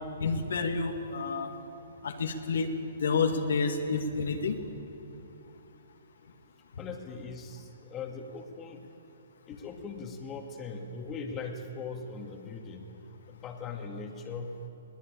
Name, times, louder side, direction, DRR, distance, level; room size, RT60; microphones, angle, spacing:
voice 1, 0.2-1.5 2.0-2.7 3.0-4.6, left 4 dB, 70° left, 3 dB, 2.2 m, -29 dB
voice 2, 6.8-8.9 9.5-12.9 13.3-14.5, left 4 dB, 25° left, 2 dB, 2.3 m, -40 dB
22.0 x 19.0 x 8.8 m, 2.9 s
hypercardioid pair, 125°, 0 cm